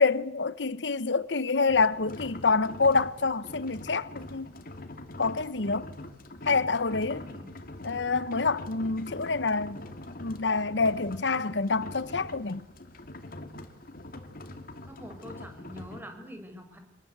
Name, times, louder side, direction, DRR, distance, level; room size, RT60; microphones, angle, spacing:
voice 1, 0.0-4.5 5.2-5.9 6.4-7.2 7.8-9.8 10.2-12.6, left 4 dB, 85° left, 1.0 m, -27 dB
sound 1, 1.7-16.0, left 1 dB, 55° left, 2.7 m, -43 dB
voice 2, 7.2-7.6 14.8-16.8, equal, 10° right, 5.5 m, -45 dB
26.5 x 20.5 x 8.0 m
head